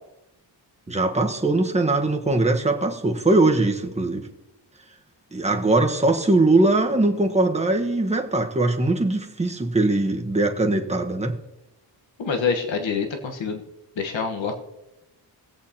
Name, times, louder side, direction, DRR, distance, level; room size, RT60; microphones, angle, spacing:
voice 1, 0.9-4.3 5.3-11.4, right 2 dB, 15° right, 3 dB, 1.1 m, -21 dB
voice 2, 12.2-13.6 14.0-14.5, left 5 dB, 90° left, 3 dB, 1.4 m, -26 dB
22.0 x 8.4 x 2.9 m, 0.93 s
wide cardioid pair, 155°, 44 cm